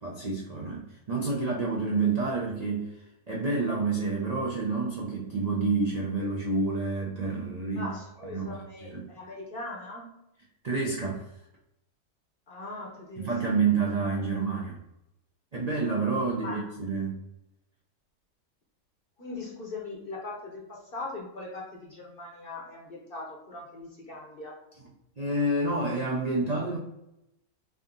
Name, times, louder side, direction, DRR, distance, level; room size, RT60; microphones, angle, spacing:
voice 1, 0.0-2.9 3.3-7.9 8.3-8.5 8.9-9.0 10.6-11.2 13.2-14.8 15.5-17.2 25.2-26.8, right 3 dB, 55° right, -2 dB, 0.4 m, -28 dB
voice 2, 7.7-10.1 12.5-13.3 16.2-16.7 19.2-24.6, left 2 dB, 45° left, -1 dB, 0.8 m, -40 dB
3.6 x 2.6 x 3.6 m, 0.84 s
omnidirectional pair, 1.6 m